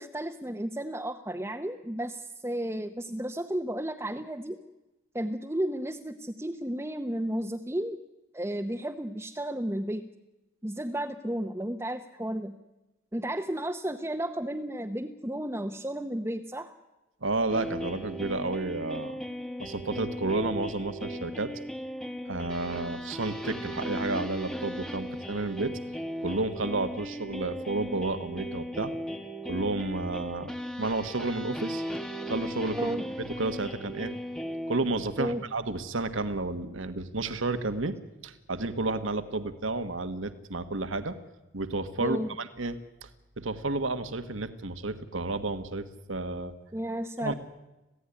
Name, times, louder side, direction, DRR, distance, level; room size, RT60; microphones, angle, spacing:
voice 1, 0.0-4.6 5.1-8.0 8.3-10.0 10.6-12.5 13.1-16.7 32.7-33.0 35.2-35.4 42.0-42.3 46.7-47.3, right 1 dB, 10° right, 3 dB, 0.8 m, -33 dB
voice 2, 17.2-19.2 19.6-21.5 22.2-25.7 26.2-28.9 29.5-30.5 30.8-31.8 32.3-34.1 34.7-37.9 38.2-41.1 41.5-43.1 43.4-46.5 47.2-47.3, right 2 dB, 75° right, 9 dB, 1.5 m, -31 dB
sound 1, 17.5-35.3, equal, 5° left, 1.2 m, -37 dB
26.5 x 16.5 x 10.0 m, 1.0 s
head